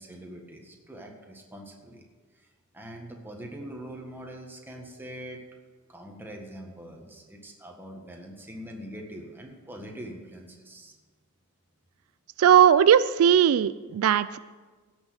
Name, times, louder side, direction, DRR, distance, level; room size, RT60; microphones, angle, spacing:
voice 1, 0.0-2.1 2.3-2.5 2.7-5.4 5.9-10.9, right 1 dB, 10° right, 1 dB, 1.6 m, -43 dB
voice 2, 12.4-14.4, right 9 dB, 75° right, 15 dB, 0.3 m, -18 dB
16.0 x 6.4 x 6.3 m, 1.4 s
head